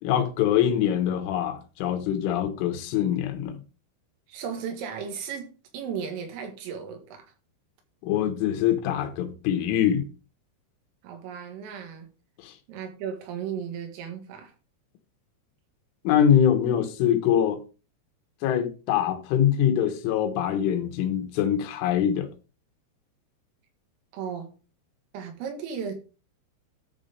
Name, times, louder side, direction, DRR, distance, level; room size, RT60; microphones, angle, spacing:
voice 1, 0.0-3.6 8.0-10.1 12.4-12.5 16.1-17.6 18.4-22.3, left 9 dB, 75° left, 3.4 m, -24 dB
voice 2, 4.3-5.5 5.7-7.3 11.0-12.1 12.7-14.5 24.1-24.5 25.1-25.9, right 7 dB, 80° right, 4.5 m, -35 dB
13.0 x 4.8 x 5.2 m
omnidirectional pair, 5.8 m